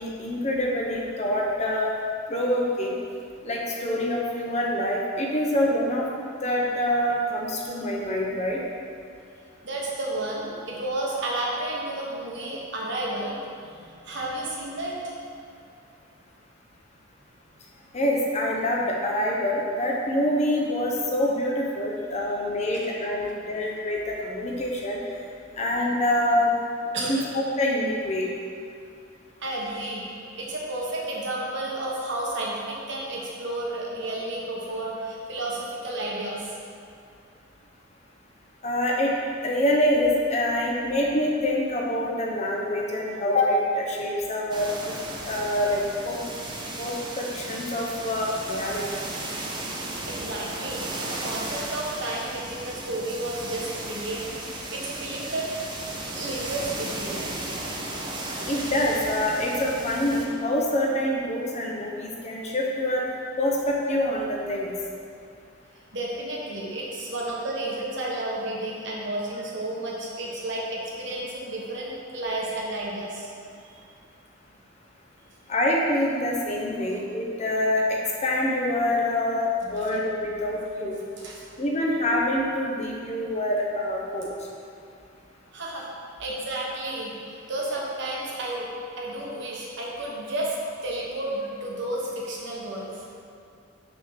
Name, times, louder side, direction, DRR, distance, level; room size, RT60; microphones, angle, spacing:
voice 1, 0.0-1.9 2.3-3.0 3.4-6.1 6.4-8.6 17.9-25.0 25.6-26.5 27.0-28.3 38.6-39.1 39.4-44.7 45.2-46.2 46.8-49.0 58.5-63.0 63.4-64.7 75.5-81.0 81.6-84.3, left 1 dB, 35° left, -2 dB, 0.8 m, -26 dB
voice 2, 9.6-15.1 22.8-22.9 26.9-27.2 29.4-30.1 30.4-36.5 50.1-55.5 56.1-57.2 65.9-73.3 73.7-73.8 79.8-79.9 81.2-81.5 85.5-85.9 86.2-88.7 89.0-90.6 90.8-93.0, right 1 dB, 60° right, -3 dB, 1.2 m, -32 dB
sound 1, 44.5-60.3, right 2 dB, 20° right, 0.7 m, -35 dB
5.9 x 3.7 x 5.7 m, 2.4 s
head